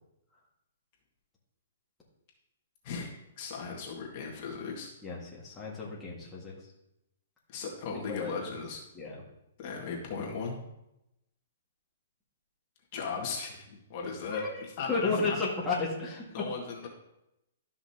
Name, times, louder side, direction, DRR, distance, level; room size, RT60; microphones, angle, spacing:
voice 1, 2.8-4.9 7.5-8.8 9.6-10.6 12.9-15.4 16.3-16.9, left 5 dB, 40° left, -1 dB, 1.8 m, -37 dB
voice 2, 5.0-6.5 7.9-8.5 8.9-9.2 14.3-14.6 14.9-16.2, left 3 dB, 10° left, -7 dB, 1.8 m, -33 dB
12.5 x 5.8 x 2.9 m, 0.86 s
hypercardioid pair, 155°, 0 cm